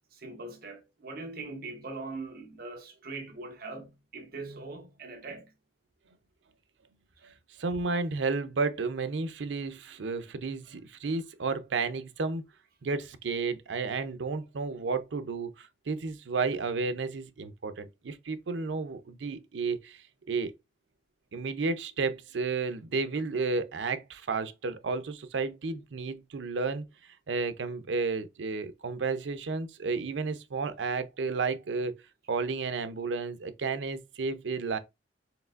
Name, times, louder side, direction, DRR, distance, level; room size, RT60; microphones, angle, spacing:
voice 1, 0.1-5.5, right 3 dB, 55° right, 0.9 m, -41 dB
voice 2, 7.6-12.4 12.8-20.5 21.3-26.8 27.3-32.0 32.3-34.8, right 4 dB, 90° right, 0.5 m, -32 dB
4.6 x 3.2 x 2.4 m
head